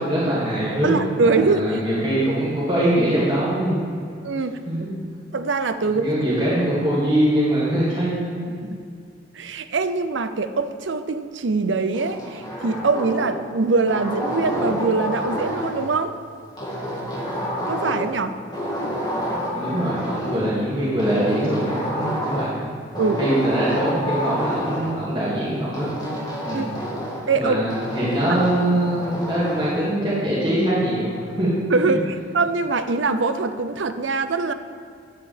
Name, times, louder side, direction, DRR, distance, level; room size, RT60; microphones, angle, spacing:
voice 1, 0.0-3.9 4.7-4.9 6.0-8.7 19.5-22.5 23.0-25.9 26.4-26.7 27.3-31.5 31.9-32.0, right 1 dB, 25° right, -9 dB, 2.1 m, -23 dB
voice 2, 0.8-1.8 4.2-4.6 5.3-6.0 8.7-8.8 9.3-16.1 17.7-18.4 23.0-23.4 26.5-26.7 27.3-27.6 31.7-34.5, right 3 dB, 75° right, 10 dB, 0.6 m, -23 dB
sound 1, 11.9-13.5 13.9-15.9 16.6-18.2 18.5-20.5 21.0-22.6 22.9-25.0 25.7-27.3 27.7-29.7, equal, 20° left, 1.9 m, -28 dB
10.5 x 4.8 x 7.2 m, 2.4 s
head